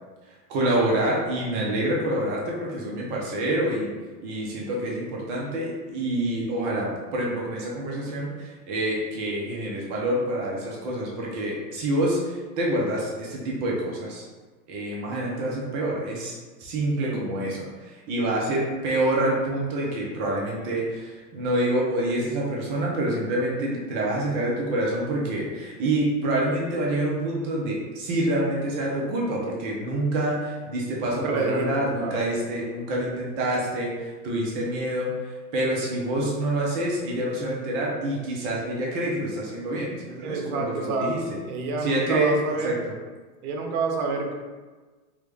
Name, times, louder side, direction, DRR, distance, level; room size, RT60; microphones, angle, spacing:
voice 1, 0.5-3.9 4.2-14.2 14.7-35.1 35.5-41.4 41.8-42.9, right 1 dB, 25° right, -3 dB, 0.3 m, -27 dB
voice 2, 31.0-31.7 32.0-32.2 40.2-41.2 41.5-42.7 43.4-44.3, right 3 dB, 65° right, 2 dB, 0.8 m, -28 dB
3.4 x 2.1 x 3.2 m, 1.3 s
hypercardioid pair, 125°, 47 cm